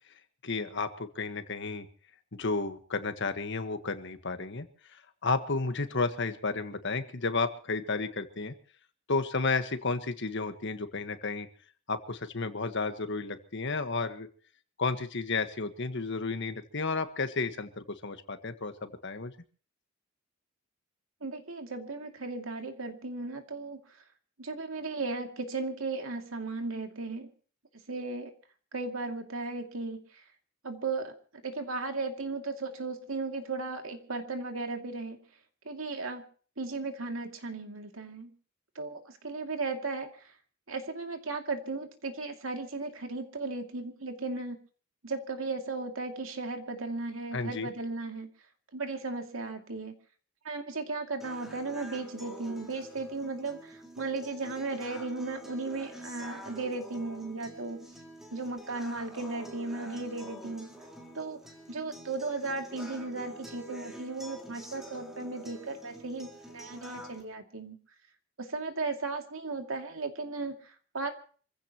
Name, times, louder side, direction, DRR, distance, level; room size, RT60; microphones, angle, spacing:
voice 1, 0.4-1.9 2.3-4.7 4.9-8.5 9.1-11.5 11.9-14.3 14.8-19.3 47.3-47.7, left 3 dB, 60° left, 9 dB, 1.5 m, -32 dB
voice 2, 21.2-24.0 24.4-27.3 27.9-28.3 28.7-30.2 30.6-31.1 31.4-35.2 35.6-36.2 36.6-38.3 38.7-40.3 40.7-44.6 45.0-48.3 48.7-50.0 50.4-57.8 58.3-60.8 61.1-61.4 61.7-67.8 68.4-71.1, right 3 dB, 80° right, 4 dB, 2.5 m, -36 dB
sound 1, 51.2-67.2, equal, ahead, 4.1 m, -47 dB
26.5 x 15.5 x 3.0 m, 0.42 s
head